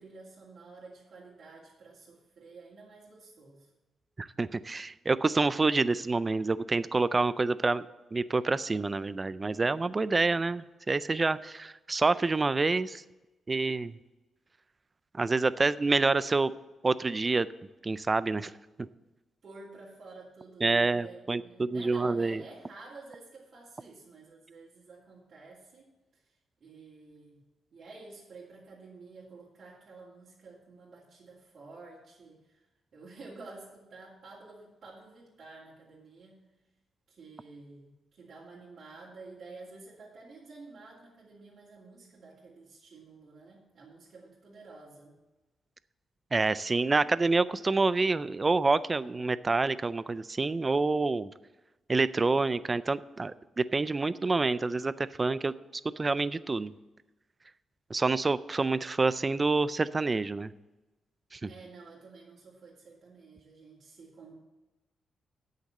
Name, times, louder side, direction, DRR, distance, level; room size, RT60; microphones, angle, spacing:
voice 1, 0.0-3.7 19.4-26.2 26.6-27.4 27.7-32.6 32.9-36.4 37.1-45.2 61.5-64.3, right 3 dB, 55° right, -7 dB, 2.7 m, -51 dB
voice 2, 4.2-7.8 8.1-13.0 13.5-13.9 15.1-16.5 16.8-17.5 17.8-18.5 18.8-18.9 20.6-22.4 46.3-51.3 51.9-55.5 56.0-56.7 57.9-60.5 61.3-61.5, right 3 dB, 25° right, 16 dB, 0.4 m, -27 dB
8.3 x 6.6 x 7.5 m, 1.1 s
cardioid pair, 115°, 0 cm